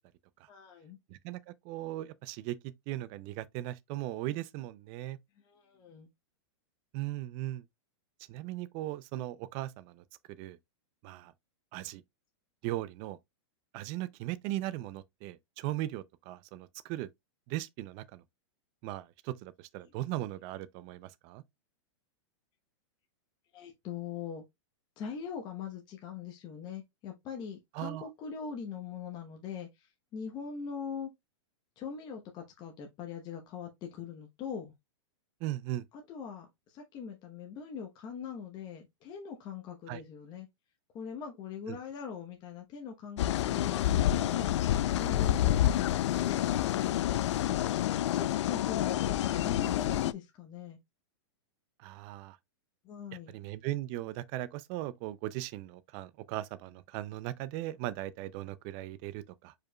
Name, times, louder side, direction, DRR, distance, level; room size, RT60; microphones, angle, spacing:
voice 1, 0.5-1.0 5.4-6.1 19.8-19.9 23.5-24.4 25.0-31.1 31.8-34.7 35.9-40.5 40.9-46.6 48.1-50.8 52.8-53.3, left 6 dB, 30° left, 0.9 m, -42 dB
voice 2, 1.1-5.2 6.9-7.6 8.3-10.0 10.4-10.6 11.0-11.3 11.7-12.0 12.6-13.2 13.7-17.1 17.5-18.2 18.8-21.4 27.8-28.1 35.4-35.8 39.9-40.0 41.7-41.8 51.8-52.4 53.3-59.5, right 15 dB, 35° right, 0.4 m, -38 dB
sound 1, 43.2-50.1, left 12 dB, 75° left, 0.4 m, -28 dB
4.8 x 4.7 x 2.2 m
supercardioid pair, 145°, 15 cm